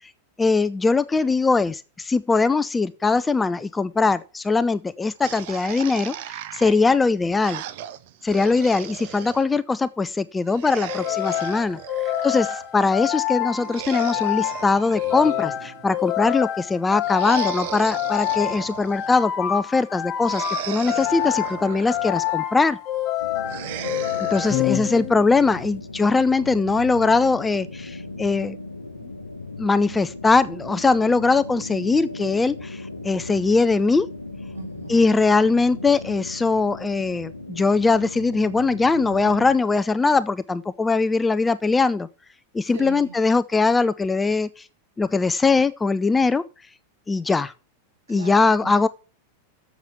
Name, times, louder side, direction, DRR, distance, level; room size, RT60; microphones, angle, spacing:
voice 1, 0.4-7.6 8.2-11.8 12.2-22.8 24.2-28.6 29.6-34.1 34.9-42.1 42.5-44.6 45.0-46.4 47.1-47.5 48.1-48.9, left 4 dB, 10° left, 0.5 m, -21 dB
sound 1, 5.2-9.5 10.5-12.7 13.5-15.9 17.0-19.3 20.2-22.4 23.4-24.6, right 11 dB, 50° right, 0.9 m, -36 dB
sound 2, 10.9-25.4, left 13 dB, 35° left, 1.3 m, -27 dB
sound 3, 23.2-39.6, left 2 dB, 80° left, 1.0 m, -37 dB
voice 2, 23.3-24.0 24.5-24.6 34.5-35.0 42.7-43.1 48.1-48.9, right 6 dB, 70° right, 5.0 m, -40 dB
7.3 x 7.2 x 8.0 m
figure-of-eight pair, 90°, 0 cm